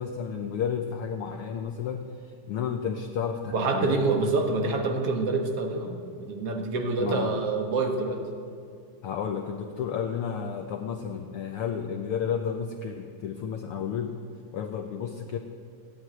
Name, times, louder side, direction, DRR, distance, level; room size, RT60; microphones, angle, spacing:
voice 1, 0.0-4.2 7.0-7.3 9.0-14.2 14.5-15.4, left 7 dB, 90° left, 5 dB, 1.2 m, -32 dB
voice 2, 3.5-8.3, right 3 dB, 55° right, 4 dB, 2.1 m, -27 dB
16.0 x 9.4 x 9.1 m, 2.4 s
omnidirectional pair, 3.5 m